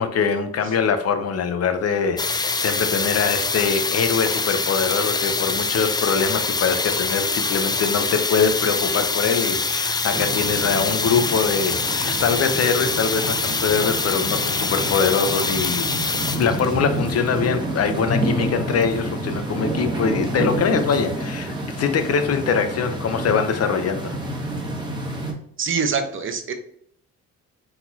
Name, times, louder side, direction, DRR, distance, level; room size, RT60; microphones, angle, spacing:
voice 1, 0.0-15.9 16.3-24.2, left 6 dB, 55° left, 8 dB, 0.8 m, -23 dB
sound 1, 2.2-21.4, left 4 dB, 15° left, 0.3 m, -25 dB
sound 2, 10.1-25.3, right 1 dB, 15° right, 1.4 m, -29 dB
voice 2, 25.6-26.5, right 5 dB, 40° right, 6 dB, 0.9 m, -24 dB
4.3 x 4.0 x 2.8 m, 0.70 s
cardioid pair, 90°, 30 cm